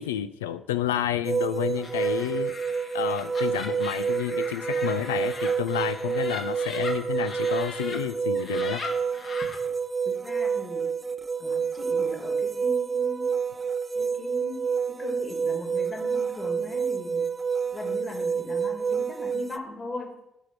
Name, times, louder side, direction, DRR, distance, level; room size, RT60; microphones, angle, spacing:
voice 1, 0.0-2.5 2.9-8.8, left 11 dB, 90° left, 13 dB, 0.3 m, -30 dB
sound 1, 1.2-19.6, right 6 dB, 30° right, 0.5 m, -28 dB
Laughter, 1.8-8.0 8.3-9.6, left 4 dB, 55° left, 1.8 m, -39 dB
voice 2, 10.0-10.9 11.4-13.3 13.9-17.3 17.7-20.2, left 2 dB, 35° left, 2 dB, 2.3 m, -39 dB
9.0 x 3.5 x 5.9 m, 0.85 s
hypercardioid pair, 45°, 0 cm